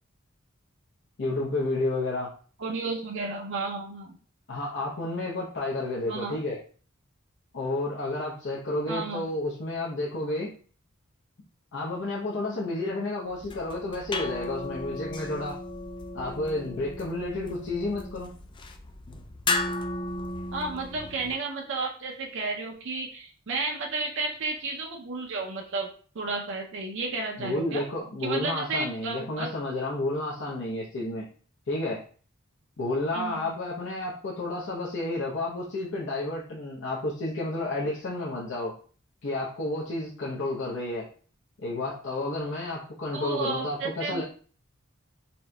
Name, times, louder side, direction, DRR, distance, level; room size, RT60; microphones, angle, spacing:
voice 1, 1.2-2.3 4.5-6.6 7.5-10.5 11.7-15.6 16.1-18.3 27.4-31.3 31.7-32.0 32.8-38.7 39.2-41.1 41.6-44.2, left 2 dB, 65° left, -6 dB, 0.7 m, -31 dB
voice 2, 2.6-4.2 6.1-6.4 8.9-9.3 20.5-25.9 26.1-27.8 28.2-29.5 33.1-33.5 43.1-44.2, right 3 dB, 65° right, 1 dB, 0.5 m, -32 dB
sound 1, 13.3-21.3, left 2 dB, 25° left, 0.3 m, -35 dB
4.2 x 2.6 x 2.2 m, 0.42 s
head